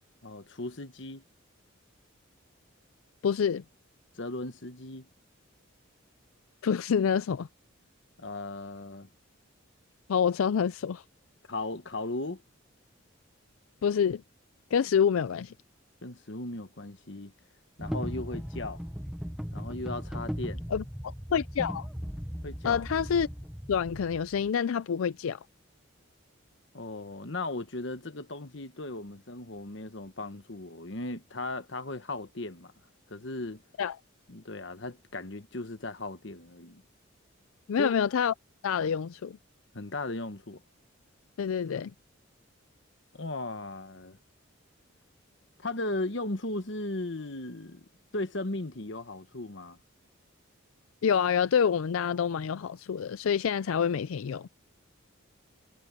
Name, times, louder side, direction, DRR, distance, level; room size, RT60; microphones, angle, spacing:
voice 1, 0.2-1.2 4.2-5.0 8.2-9.1 11.5-12.4 16.0-17.3 17.8-18.8 19.5-20.6 22.4-22.8 26.7-32.7 33.1-33.6 34.3-36.8 37.8-37.9 39.7-40.6 43.1-44.2 45.6-47.8 48.1-49.8, left 2 dB, 60° left, 1.2 m, -37 dB
voice 2, 3.2-3.6 6.6-7.5 10.1-11.0 13.8-14.2 14.7-15.5 20.7-21.9 22.6-23.3 23.7-25.4 33.8-34.0 37.7-38.3 38.6-39.4 41.4-41.9 51.0-54.5, left 7 dB, 85° left, 0.4 m, -27 dB
sound 1, 17.8-24.5, equal, ahead, 1.0 m, -37 dB
head